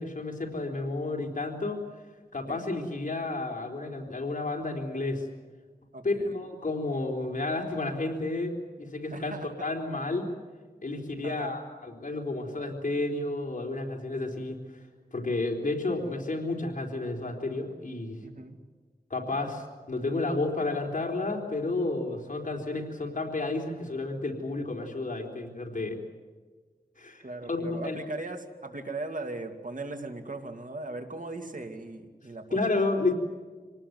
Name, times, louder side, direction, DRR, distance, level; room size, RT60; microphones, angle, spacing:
voice 1, 0.0-1.8 2.3-5.2 6.0-9.3 9.6-10.3 10.8-14.6 15.1-18.2 19.1-26.0 27.0-28.0 32.5-33.1, left 2 dB, 55° left, 1 dB, 3.9 m, -31 dB
voice 2, 5.9-6.4 9.1-9.7 11.2-11.6 18.2-18.6 27.2-32.7, right 2 dB, 55° right, 5 dB, 2.7 m, -38 dB
26.5 x 19.0 x 9.6 m, 1.4 s
wide cardioid pair, 70°, 16 cm